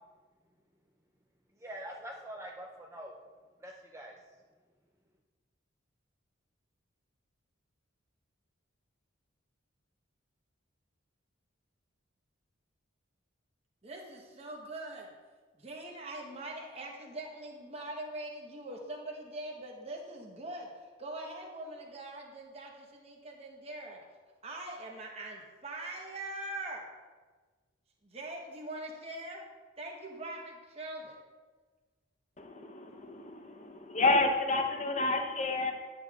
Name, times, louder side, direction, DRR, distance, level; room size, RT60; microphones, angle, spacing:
voice 1, 1.6-3.1 3.6-4.2, right 1 dB, 15° right, -1 dB, 0.4 m, -44 dB
voice 2, 13.8-15.1 15.6-24.0 24.4-26.8 28.0-29.4 29.8-31.2, right 1 dB, 30° right, -1 dB, 0.9 m, -42 dB
voice 3, 32.4-35.7, left 2 dB, 35° left, 4 dB, 0.7 m, -30 dB
10.5 x 7.6 x 2.4 m, 1.4 s
head